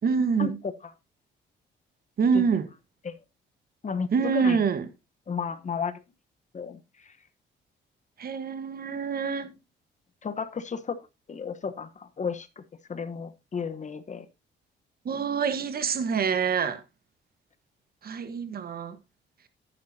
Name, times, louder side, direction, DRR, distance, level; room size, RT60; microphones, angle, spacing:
voice 1, 0.0-0.6 2.2-2.7 4.1-4.9 8.2-9.5 15.0-16.8 18.0-19.0, right 6 dB, 50° right, 1.3 m, -26 dB
voice 2, 3.8-4.6 5.3-5.9 6.5-6.8 10.2-11.0 11.3-12.6 12.9-14.3, left 6 dB, 35° left, 1.1 m, -33 dB
10.5 x 10.0 x 2.8 m
cardioid pair, 90°, 20 cm